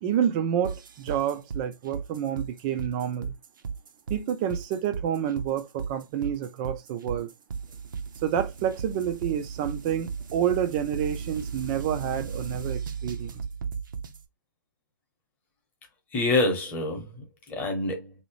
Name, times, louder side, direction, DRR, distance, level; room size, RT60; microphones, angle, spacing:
voice 1, 0.0-3.3 4.1-7.3 8.2-13.4, right 9 dB, 25° right, 0.4 m, -29 dB
sound 1, 0.6-14.2, right 6 dB, 65° right, 0.7 m, -35 dB
voice 2, 16.1-18.1, left 2 dB, 15° left, 0.9 m, -27 dB
3.0 x 2.7 x 3.0 m
hypercardioid pair, 150°, 11 cm